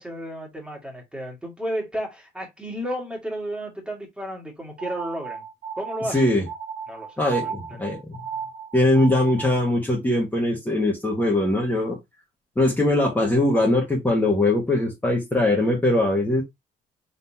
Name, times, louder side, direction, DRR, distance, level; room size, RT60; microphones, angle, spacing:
voice 1, 0.0-5.4 5.8-6.3 6.9-8.0, equal, 5° right, 1.9 m, -33 dB
sound 1, 4.8-9.7, right 7 dB, 60° right, 1.3 m, -35 dB
voice 2, 6.1-6.4 7.2-8.2 8.7-12.0 12.6-16.4, left 1 dB, 10° left, 1.4 m, -21 dB
3.9 x 3.9 x 2.8 m
cardioid pair, 110°, 17 cm